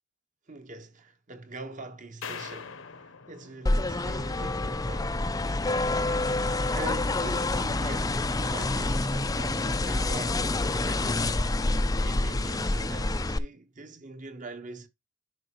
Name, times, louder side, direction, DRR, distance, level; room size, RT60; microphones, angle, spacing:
voice 1, 0.5-5.3 6.3-11.5 12.0-14.9, right 2 dB, 40° right, 1.2 m, -43 dB
sound 1, 2.2-4.5, left 6 dB, 75° left, 1.1 m, -43 dB
sound 2, 3.7-13.4, left 2 dB, 20° left, 0.5 m, -27 dB
10.5 x 5.1 x 3.0 m
head